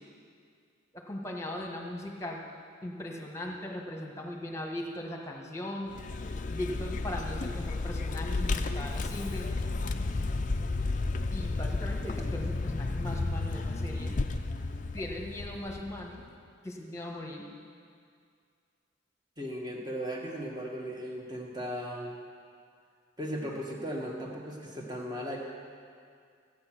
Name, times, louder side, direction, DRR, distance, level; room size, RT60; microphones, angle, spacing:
voice 1, 0.9-2.4 2.8-6.0 6.5-9.5 11.3-14.2 14.9-16.2 16.6-17.5, left 1 dB, 15° left, 0 dB, 1.4 m, -38 dB
Vehicle, 5.9-16.3, left 3 dB, 40° left, 0.5 m, -32 dB
voice 2, 19.4-22.1 23.2-25.4, equal, 20° right, -1 dB, 1.6 m, -37 dB
15.5 x 8.8 x 6.1 m, 2.2 s
head